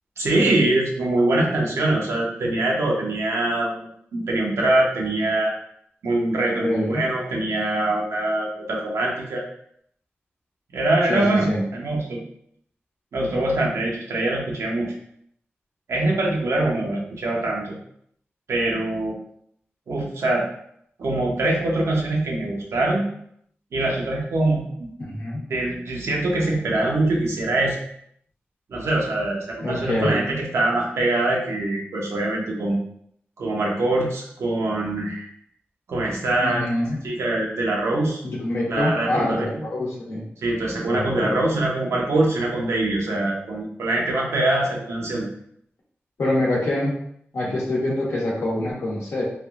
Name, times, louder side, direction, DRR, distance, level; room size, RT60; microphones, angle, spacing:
voice 1, 0.2-5.5 6.0-9.4 10.7-12.2 13.1-14.9 15.9-17.8 18.5-19.1 19.9-20.4 21.0-23.1 23.7-24.9 25.5-27.8 28.7-32.8 33.4-35.3 35.9-36.6 37.0-38.2 38.7-39.6 40.4-45.3, right 2 dB, 85° right, -2 dB, 0.7 m, -23 dB
voice 2, 6.5-7.0 11.1-11.2 11.5-11.6 25.0-25.4 29.6-30.2 36.4-37.0 38.2-40.2 40.9-41.4 46.2-47.0 47.3-49.2, left 1 dB, 80° left, -4 dB, 0.9 m, -25 dB
3.4 x 2.3 x 2.4 m, 0.69 s
cardioid pair, 45°, 5 cm